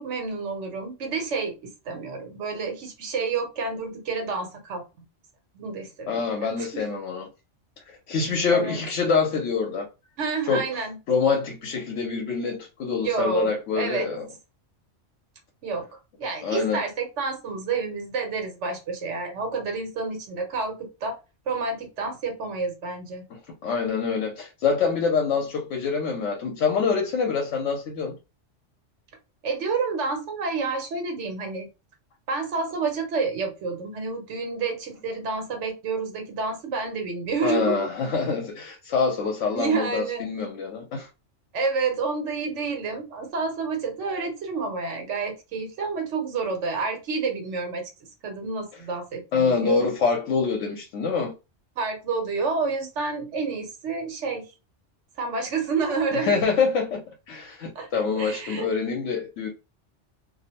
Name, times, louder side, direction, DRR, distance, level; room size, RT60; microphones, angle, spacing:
voice 1, 0.0-4.8 5.5-6.8 8.5-8.8 10.2-11.0 13.0-14.1 15.6-15.9 16.2-21.2 21.5-23.2 29.4-31.7 32.3-37.8 39.5-40.3 41.5-47.9 48.2-49.9 51.8-54.5 55.2-56.4 57.7-58.7, right 4 dB, 80° right, 1.1 m, -29 dB
voice 2, 6.1-7.3 7.9-9.9 10.5-10.6 11.1-14.3 16.4-16.8 23.6-28.2 37.4-41.1 49.3-51.3 56.1-59.5, left 5 dB, 90° left, 1.0 m, -25 dB
2.5 x 2.0 x 2.8 m
omnidirectional pair, 1.2 m